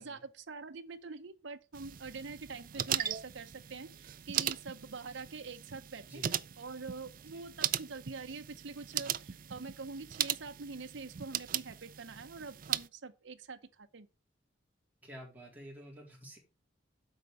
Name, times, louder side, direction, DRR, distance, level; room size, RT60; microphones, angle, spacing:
voice 1, 0.0-6.2 6.6-14.1, right 4 dB, 70° right, 0.8 m, -45 dB
sound 1, 1.7-12.9, right 11 dB, 45° right, 0.4 m, -38 dB
voice 2, 15.0-16.4, equal, 10° right, 3.8 m, -50 dB
8.1 x 5.2 x 6.7 m
head